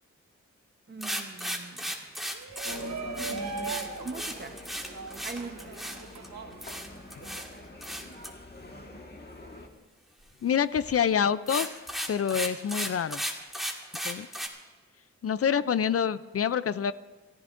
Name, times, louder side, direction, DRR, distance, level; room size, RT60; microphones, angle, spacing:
voice 1, 0.9-1.9 3.4-4.7 5.2-5.8, right 3 dB, 35° right, 8 dB, 0.9 m, -42 dB
sound 1, 1.0-6.3 6.6-7.5 7.8-8.3 10.8-11.0 11.3-14.5, equal, ahead, 1.8 m, -35 dB
Shout, 2.3-7.4, right 5 dB, 65° right, 1.1 m, -39 dB
sound 2, 2.6-9.7, left 2 dB, 35° left, 1.6 m, -45 dB
voice 2, 10.4-11.7 12.1-13.2 14.0-14.3 15.2-16.9, left 8 dB, 55° left, 15 dB, 0.4 m, -26 dB
29.0 x 14.5 x 2.6 m, 1.3 s
wide cardioid pair, 90°, 29 cm